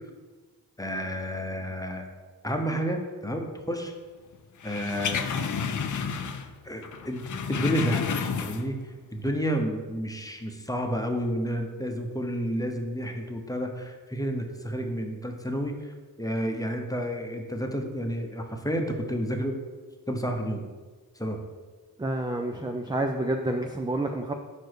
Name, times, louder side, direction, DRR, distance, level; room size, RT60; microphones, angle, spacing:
voice 1, 0.8-2.1 2.4-3.9 4.6-5.2 6.6-19.6 20.1-20.6 21.1-21.4, equal, 10° left, 3 dB, 1.0 m, -30 dB
sound 1, 4.6-6.6 6.8-8.8 9.2-9.3, left 6 dB, 45° left, 0.6 m, -30 dB
voice 2, 22.0-24.3, right 1 dB, 10° right, 3 dB, 0.5 m, -29 dB
5.1 x 4.6 x 4.7 m, 1.4 s
cardioid pair, 50°, 41 cm